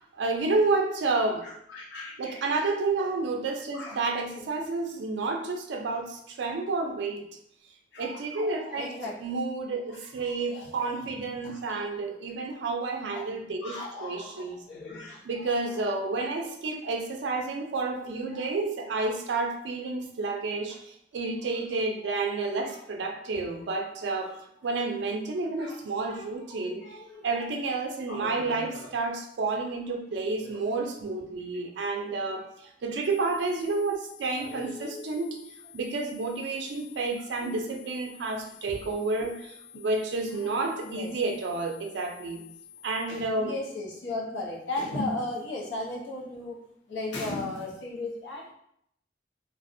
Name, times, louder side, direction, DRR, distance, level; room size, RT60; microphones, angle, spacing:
voice 1, 0.0-1.5 2.2-7.3 8.0-8.9 9.2-14.6 15.3-24.4 24.6-35.4 35.7-42.4 42.8-43.5, right 3 dB, 70° right, 3 dB, 0.4 m, -30 dB
voice 2, 1.4-2.7 3.7-4.0 4.3-4.5 7.9-9.3 9.9-10.9 11.4-11.9 13.1-13.2 13.6-15.7 16.8-16.9 18.0-18.5 19.0-19.2 20.7-20.8 22.6-22.8 24.2-24.3 25.6-25.8 26.1-27.5 28.1-28.9 30.4-30.6 34.4-35.3 37.4-37.6 38.7-38.8 39.2-39.3 40.4-41.1 43.1-48.5, left 2 dB, 80° left, -2 dB, 0.6 m, -38 dB
sound 1, 33.0-43.0, left 10 dB, 10° right, 0.5 m, -51 dB
2.4 x 2.0 x 2.5 m, 0.73 s
head